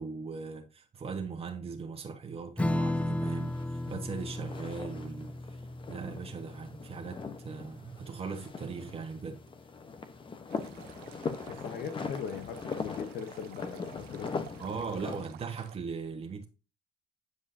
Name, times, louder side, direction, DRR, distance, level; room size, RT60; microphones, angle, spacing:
voice 1, 0.0-9.4 14.6-16.4, right 5 dB, 40° right, 1.6 m, -39 dB
Strum, 2.6-9.4, left 1 dB, 10° left, 0.4 m, -35 dB
sound 1, 2.8-15.2, left 5 dB, 30° left, 1.1 m, -41 dB
Stream, 10.5-15.8, right 15 dB, 75° right, 0.6 m, -53 dB
voice 2, 11.5-14.4, left 7 dB, 65° left, 1.2 m, -40 dB
9.4 x 4.8 x 2.8 m
supercardioid pair, 85°, 16 cm